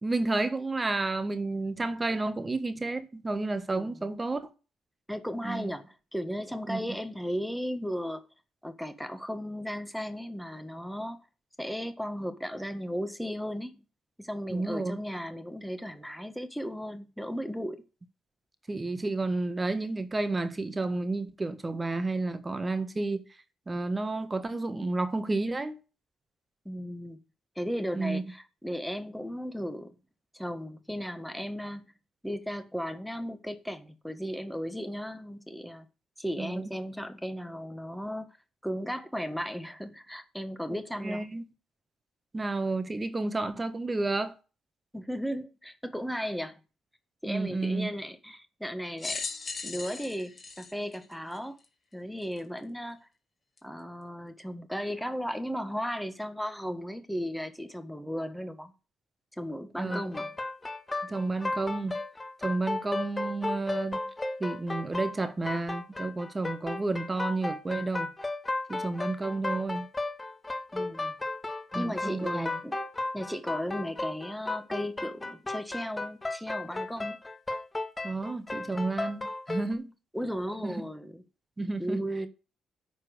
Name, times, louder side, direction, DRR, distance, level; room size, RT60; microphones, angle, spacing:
voice 1, 0.0-4.5 5.4-5.7 6.7-6.8 14.5-15.0 18.7-23.2 23.7-25.8 27.9-28.2 36.4-36.5 40.7-41.4 42.3-44.3 47.2-47.9 59.8-60.0 61.0-62.0 62.4-64.1 64.4-68.1 68.7-69.9 71.7-72.6 78.0-79.9 80.6-80.8 81.6-82.0, right 2 dB, 20° right, 1.5 m, -31 dB
voice 2, 3.7-4.0 5.1-8.2 8.6-11.2 11.6-13.8 14.2-17.8 26.6-27.2 27.5-29.9 30.3-31.9 32.2-35.9 36.2-38.3 38.6-41.3 44.9-46.6 47.2-49.2 49.6-51.6 51.9-53.1 53.6-58.7 59.4-60.3 70.7-71.1 71.7-72.8 73.1-77.2 80.1-81.2 81.8-82.3, equal, ahead, 1.6 m, -35 dB
sound 1, 49.0-51.7 52.4-52.5 53.6-53.7, left 4 dB, 35° left, 2.8 m, -38 dB
sound 2, 59.9-79.7, left 2 dB, 20° left, 1.6 m, -34 dB
11.0 x 4.5 x 7.9 m
cardioid pair, 90°, 0 cm